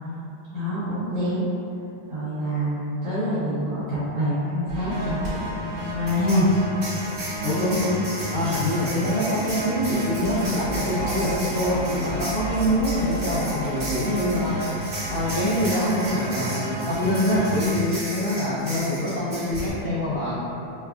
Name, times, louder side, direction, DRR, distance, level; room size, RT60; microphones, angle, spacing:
voice 1, 0.5-1.5 2.1-6.5, equal, 90° right, -12 dB, 1.2 m, -26 dB
sound 1, 4.7-17.7, right 1 dB, 65° right, 1.9 m, -32 dB
sound 2, 5.2-5.3 6.1-19.7, right 1 dB, 40° right, 1.3 m, -36 dB
voice 2, 7.4-8.0 8.3-14.6 15.1-20.3, left 1 dB, 80° left, -13 dB, 1.6 m, -25 dB
sound 3, 7.8-13.1, left 1 dB, 60° left, 1.5 m, -43 dB
5.1 x 2.2 x 2.3 m, 2.8 s
omnidirectional pair, 3.8 m